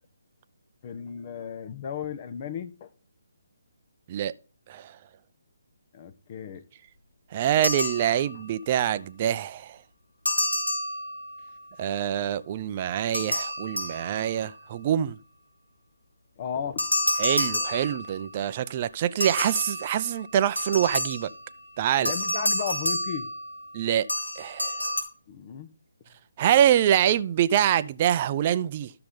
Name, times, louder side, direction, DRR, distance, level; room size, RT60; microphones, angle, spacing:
voice 1, 0.8-2.9 5.9-6.6 16.4-16.8 22.0-23.3 25.3-25.7, left 8 dB, 35° left, 1.2 m, -35 dB
voice 2, 4.7-5.0 7.3-9.8 11.8-15.2 17.2-21.3 21.8-22.1 23.7-24.1 24.4-24.8 26.4-28.9, right 10 dB, 35° right, 0.6 m, -25 dB
sound 1, 7.6-8.6 10.3-11.5 13.1-14.5 16.8-18.4 19.2-21.5 22.1-23.8 24.1-25.0, left 1 dB, 90° left, 3.1 m, -29 dB
12.5 x 6.7 x 3.8 m
figure-of-eight pair, 145°, 0 cm